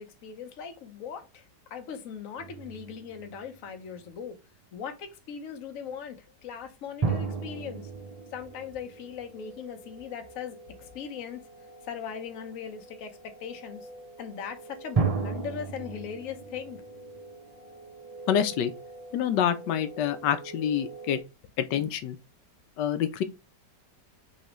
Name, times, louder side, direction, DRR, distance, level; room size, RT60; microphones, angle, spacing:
voice 1, 0.0-1.4 1.7-4.3 4.7-6.2 6.4-7.9 8.3-11.4 11.8-13.8 14.2-16.8, left 7 dB, 55° left, 1.1 m, -39 dB
sound 1, 2.4-4.0 7.0-9.7 15.0-17.9, right 4 dB, 45° right, 0.4 m, -33 dB
sound 2, 7.4-21.2, right 2 dB, 25° left, 2.3 m, -47 dB
voice 2, 18.3-18.7 19.1-21.2 21.6-22.2 22.8-23.2, left 9 dB, 85° left, 1.2 m, -27 dB
5.4 x 3.2 x 3.0 m
omnidirectional pair, 1.8 m